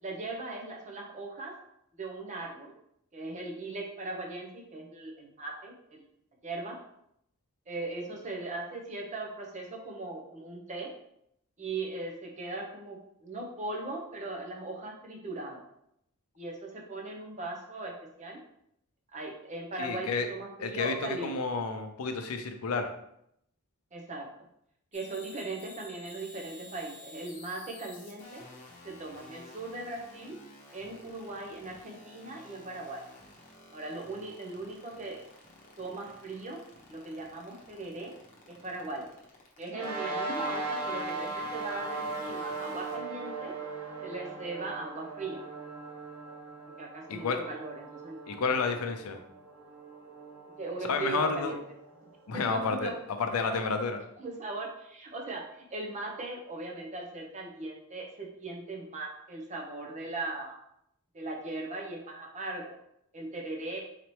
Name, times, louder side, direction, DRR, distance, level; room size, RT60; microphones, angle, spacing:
voice 1, 0.0-1.5 1.9-2.7 3.1-6.0 6.4-6.8 7.7-10.9 11.6-15.7 16.4-18.4 19.1-21.4 23.9-24.4 24.9-28.4 28.8-30.4 30.7-33.0 33.7-35.2 35.8-36.6 36.9-38.1 38.5-39.1 39.6-43.5 44.0-45.4 46.8-48.2 50.6-51.6 52.3-53.0 53.4-53.7 54.2-60.6 61.1-62.7 63.1-63.9, right 2 dB, 35° right, 0 dB, 0.7 m, -39 dB
voice 2, 19.8-20.3 20.6-22.9 47.1-47.4 48.3-49.2 50.9-51.5 52.3-52.9 53.2-54.0, left 4 dB, 75° left, 6 dB, 0.5 m, -30 dB
sound 1, 24.9-40.0 40.3-43.0, left 2 dB, 35° left, 0.9 m, -52 dB
sound 2, 39.7-52.5, right 3 dB, 80° right, 0.8 m, -39 dB
4.0 x 2.9 x 3.1 m, 0.75 s
head